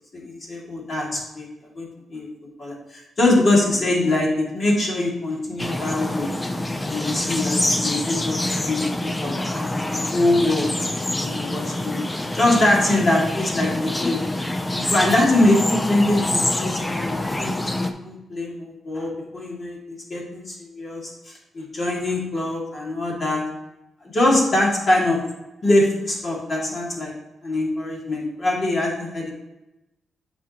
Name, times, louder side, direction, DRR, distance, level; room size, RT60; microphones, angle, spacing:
voice 1, 0.1-2.3 2.6-6.3 6.8-10.7 11.2-12.0 12.3-14.2 14.7-23.4 24.1-25.2 25.6-27.1 27.4-29.3, left 1 dB, 40° left, -3 dB, 2.3 m, -23 dB
sound 1, 5.6-17.9, left 1 dB, 15° left, 0.5 m, -26 dB
8.4 x 6.0 x 3.0 m, 0.96 s
cardioid pair, 130°, 0 cm